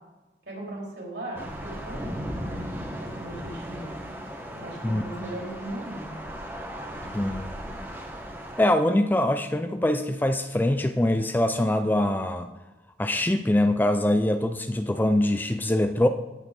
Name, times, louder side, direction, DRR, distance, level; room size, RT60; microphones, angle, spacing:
voice 1, 0.5-3.9 4.5-6.2, right 1 dB, 70° right, -3 dB, 4.0 m, -38 dB
Thunder / Rain, 1.3-8.7, equal, 15° right, 1.2 m, -37 dB
voice 2, 7.1-7.5 8.6-12.5 13.0-16.1, left 1 dB, 10° left, 8 dB, 0.4 m, -23 dB
16.5 x 6.7 x 3.8 m, 1.2 s
head